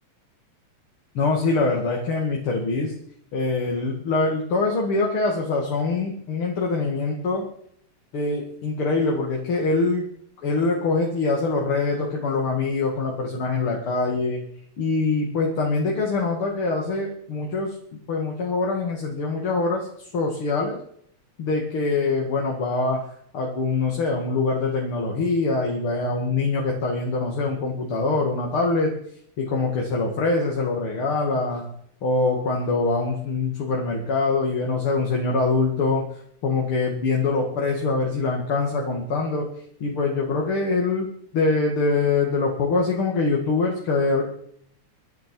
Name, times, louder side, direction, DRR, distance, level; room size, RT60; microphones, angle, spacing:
voice 1, 1.1-2.9 3.3-7.4 8.1-10.1 10.4-14.4 14.8-17.8 18.1-20.8 21.4-23.0 23.3-28.9 29.4-31.7 32.0-36.0 36.4-39.5 39.8-44.2, left 3 dB, 45° left, -1 dB, 2.9 m, -24 dB
23.5 x 9.1 x 4.7 m, 0.65 s
omnidirectional pair, 3.4 m